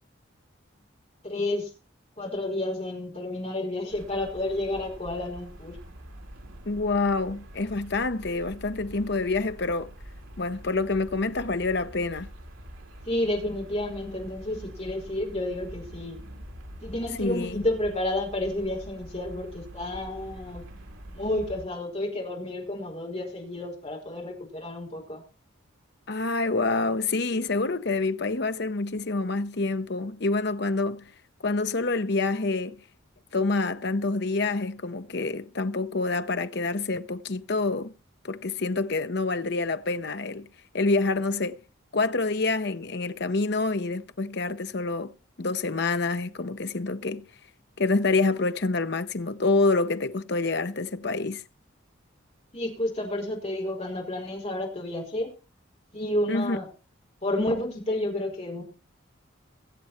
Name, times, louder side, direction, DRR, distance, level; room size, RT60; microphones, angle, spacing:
voice 1, 1.2-1.7 2.2-5.8 13.1-16.2 16.8-20.7 21.1-25.2 52.5-55.3 55.9-56.7 57.2-58.6, left 1 dB, 30° left, 5.2 m, -30 dB
sound 1, 3.9-21.6, equal, 80° right, 3.3 m, -45 dB
voice 2, 6.7-9.9 10.4-12.3 17.2-17.6 26.1-31.1 31.4-32.8 33.3-37.9 38.2-40.5 40.7-41.6 41.9-45.1 45.4-47.2 47.8-51.4 56.3-56.6, left 3 dB, 55° left, 0.8 m, -27 dB
22.5 x 7.7 x 4.3 m
head